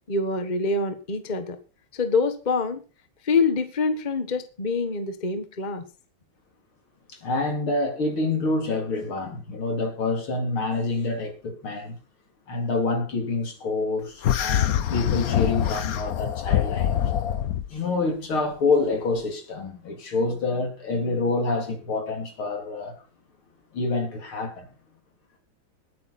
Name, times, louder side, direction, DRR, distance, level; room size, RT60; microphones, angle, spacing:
voice 1, 0.1-1.6 1.9-2.8 3.2-5.8, left 4 dB, 25° left, 1.4 m, -25 dB
voice 2, 7.1-12.0 12.5-17.0 17.7-23.0 23.7-24.7, left 3 dB, 80° left, 4.2 m, -27 dB
sound 1, 14.2-17.7, left 10 dB, 55° left, 1.1 m, -24 dB
19.0 x 9.5 x 4.3 m
omnidirectional pair, 2.3 m